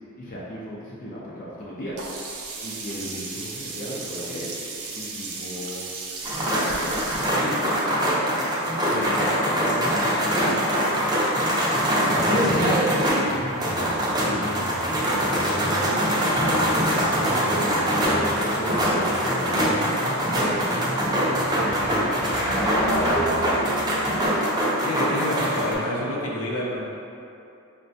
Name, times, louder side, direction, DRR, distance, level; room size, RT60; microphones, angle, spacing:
voice 1, 0.2-2.1 2.6-4.6 4.9-5.9 6.5-7.7 8.9-10.7 14.4-22.7 22.9-23.3, equal, 40° left, -6 dB, 0.5 m, -36 dB
Sink (filling or washing), 2.0-7.4, right 4 dB, 85° right, 0.5 m, -35 dB
sound 1, 6.2-25.7, equal, 20° right, 0.5 m, -23 dB
sound 2, 9.4-24.3, equal, 15° left, 0.8 m, -33 dB
voice 2, 12.1-12.6 14.2-14.4 24.8-26.8, left 1 dB, 75° left, -4 dB, 0.7 m, -29 dB
5.6 x 2.2 x 2.6 m, 2.7 s
head